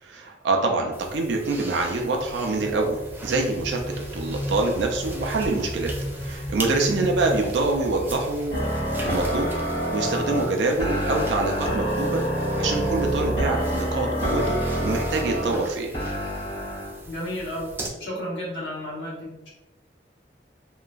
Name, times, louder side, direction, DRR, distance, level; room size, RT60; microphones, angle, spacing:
voice 1, 0.0-3.8 4.1-5.9 6.2-8.6 9.0-9.5 9.9-15.9, right 3 dB, 85° right, 1 dB, 0.4 m, -25 dB
sound 1, 0.9-17.9, right 2 dB, 10° right, 0.3 m, -40 dB
sound 2, 1.8-10.4, left 1 dB, 35° left, 0.6 m, -35 dB
sound 3, 8.5-17.0, equal, 65° left, 1.4 m, -27 dB
voice 2, 17.1-17.7 18.0-19.5, left 1 dB, 90° left, -6 dB, 1.1 m, -33 dB
2.9 x 2.3 x 2.4 m, 1.0 s
head